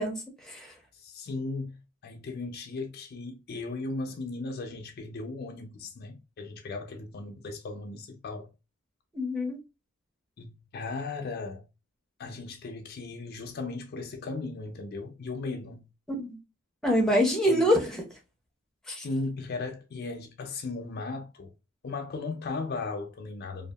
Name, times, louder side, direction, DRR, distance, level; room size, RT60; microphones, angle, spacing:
voice 1, 0.0-0.7 9.1-9.6 16.1-16.4 16.8-18.0 18.9-19.1, equal, ahead, 0.6 m, -26 dB
voice 2, 0.9-8.5 10.4-11.7 12.2-15.9 17.5-17.7 19.0-21.5 21.8-23.7, left 3 dB, 45° left, 0.4 m, -36 dB
2.7 x 2.4 x 2.3 m
head